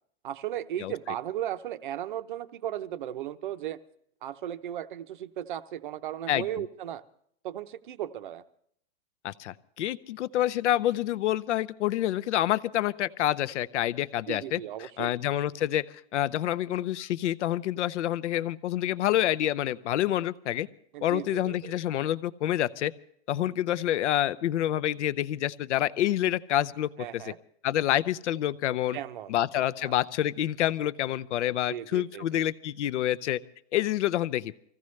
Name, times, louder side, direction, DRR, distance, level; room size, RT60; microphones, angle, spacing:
voice 1, 0.2-3.8 4.2-7.0 7.4-8.4 14.3-15.1 20.9-21.8 27.0-27.4 28.9-29.9 31.7-32.4, right 11 dB, 45° right, 12 dB, 0.7 m, -36 dB
voice 2, 9.2-14.6 15.0-15.9 16.1-20.7 21.0-22.9 23.3-27.2 27.6-29.0 29.3-33.4 33.7-34.5, left 12 dB, 70° left, 15 dB, 0.7 m, -27 dB
25.0 x 15.5 x 3.2 m, 0.67 s
supercardioid pair, 180°, 36 cm